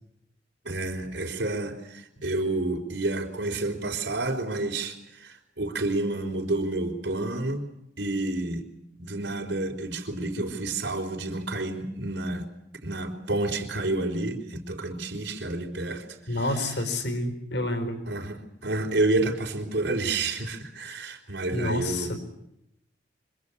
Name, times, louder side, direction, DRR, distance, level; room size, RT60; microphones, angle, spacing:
voice 1, 0.6-7.6 8.0-8.6 9.0-12.5 12.8-16.8 18.0-22.2, right 2 dB, 80° right, 3 dB, 4.0 m, -30 dB
voice 2, 16.3-18.0 21.5-22.2, left 1 dB, 70° left, 7 dB, 4.5 m, -28 dB
26.0 x 23.5 x 8.5 m, 0.81 s
head